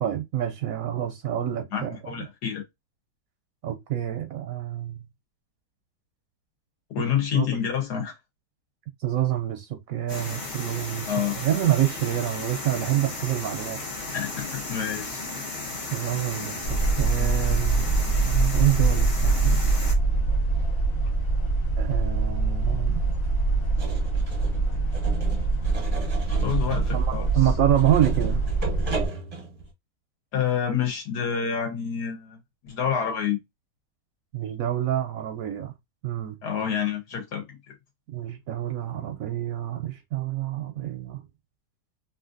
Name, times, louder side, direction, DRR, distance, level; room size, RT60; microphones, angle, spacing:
voice 1, 0.0-2.2 3.6-5.0 7.3-7.5 9.0-13.8 15.9-19.6 21.8-23.2 26.9-28.4 34.3-35.7 36.0-36.4 38.1-41.2, right 12 dB, 70° right, 0.9 m, -27 dB
voice 2, 1.7-2.6 6.9-8.1 11.1-11.4 14.1-15.2 21.0-21.1 25.3-25.4 26.4-27.3 30.3-32.4 32.6-33.4 36.4-37.7, left 8 dB, 75° left, 1.7 m, -28 dB
sound 1, 10.1-19.9, left 3 dB, 40° left, 0.6 m, -35 dB
sound 2, 16.6-29.1, right 3 dB, 60° left, 1.1 m, -24 dB
sound 3, 23.8-29.7, right 4 dB, 35° right, 0.6 m, -35 dB
3.2 x 2.5 x 2.5 m
omnidirectional pair, 1.8 m